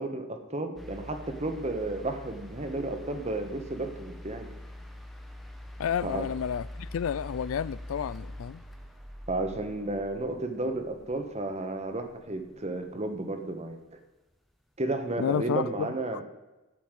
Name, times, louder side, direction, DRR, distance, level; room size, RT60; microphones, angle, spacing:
voice 1, 0.0-4.5 6.0-6.3 9.3-13.8 14.8-16.2, right 2 dB, 30° right, 1.4 m, -32 dB
sound 1, 0.8-13.0 14.3-14.4, left 1 dB, ahead, 1.2 m, -44 dB
voice 2, 5.8-8.6 15.2-15.9, left 7 dB, 75° left, 0.3 m, -31 dB
14.0 x 5.8 x 9.1 m
head